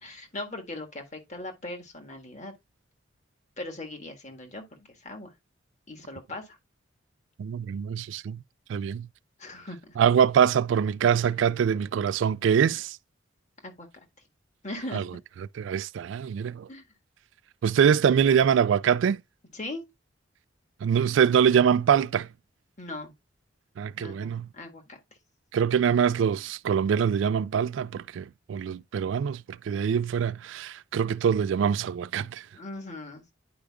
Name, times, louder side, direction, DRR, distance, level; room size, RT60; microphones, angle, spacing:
voice 1, 0.0-2.5 3.6-5.3 5.9-6.6 9.4-10.0 12.6-12.8 13.6-13.9 14.6-15.0 16.7-16.8 19.5-19.8 22.8-23.1 24.0-25.0 32.5-33.2, left 2 dB, 40° left, 1.6 m, -39 dB
voice 2, 7.4-8.4 8.7-9.1 10.0-13.0 14.9-15.0 15.6-16.7 17.6-19.2 20.8-22.3 23.8-24.5 25.5-32.4, right 7 dB, 75° right, 0.3 m, -24 dB
10.0 x 4.9 x 2.3 m
head